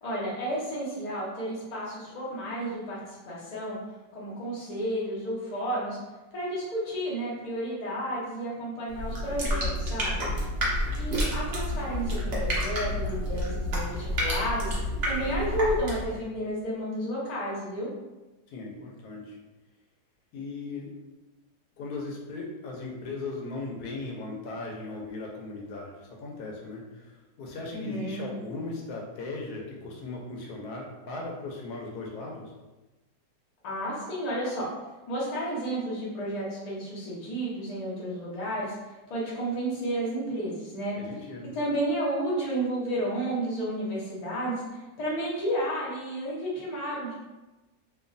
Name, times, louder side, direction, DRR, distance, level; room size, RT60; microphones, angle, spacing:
voice 1, 0.0-3.8 4.1-6.0 6.3-10.3 10.9-14.7 15.1-17.9 27.7-28.3 33.6-34.7 35.1-41.0 41.5-47.1, right 1 dB, 90° left, -6 dB, 0.3 m, -32 dB
sound 1, 8.9-16.2, equal, 65° right, 0.6 m, -29 dB
voice 2, 10.2-10.9 18.5-19.4 20.3-20.9 21.8-32.5 40.9-41.5, left 3 dB, 70° left, -2 dB, 1.0 m, -38 dB
3.0 x 2.2 x 2.5 m, 1.1 s
omnidirectional pair, 1.9 m